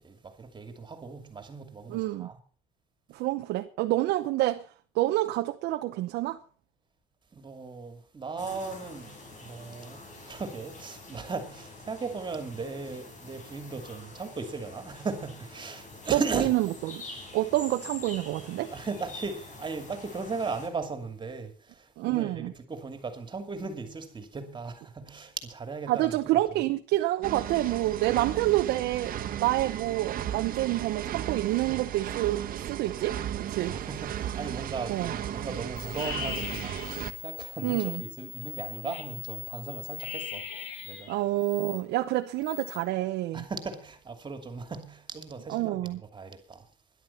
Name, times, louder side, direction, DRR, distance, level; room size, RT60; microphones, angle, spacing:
voice 1, 0.0-2.4 7.3-16.5 18.7-26.7 28.1-28.2 33.7-36.8 37.2-40.5 40.8-41.1 43.3-45.8 46.1-46.7, right 4 dB, 25° right, 2.6 m, -37 dB
voice 2, 1.9-2.3 3.1-4.6 4.9-6.4 16.1-17.0 17.3-18.7 22.0-22.5 25.9-33.8 34.9-35.1 37.6-38.0 41.1-43.4 45.5-46.0, right 16 dB, 85° right, 0.9 m, -28 dB
sound 1, 8.4-20.7, left 2 dB, 50° left, 5.3 m, -46 dB
sound 2, 27.2-37.1, right 10 dB, 55° right, 1.4 m, -35 dB
sound 3, 35.8-41.8 42.2-42.8, left 7 dB, 80° left, 2.3 m, -39 dB
13.0 x 11.0 x 5.7 m
cardioid pair, 110°, 17 cm